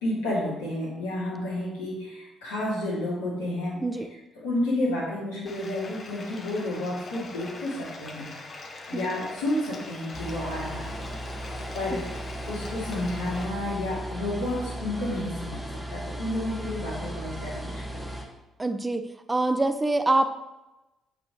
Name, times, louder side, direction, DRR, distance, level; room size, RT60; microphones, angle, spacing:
voice 1, 0.0-3.8 4.4-11.0 11.4-18.1, left 1 dB, 70° left, -5 dB, 2.7 m, -31 dB
Bathtub (filling or washing), 5.5-13.5, left 3 dB, 40° left, 1.2 m, -42 dB
sound 1, 10.1-18.2, right 1 dB, ahead, 1.8 m, -36 dB
voice 2, 18.6-19.0 19.3-20.3, right 2 dB, 20° right, 9 dB, 0.7 m, -25 dB
9.1 x 8.2 x 3.2 m, 1.0 s
figure-of-eight pair, 45°, 0 cm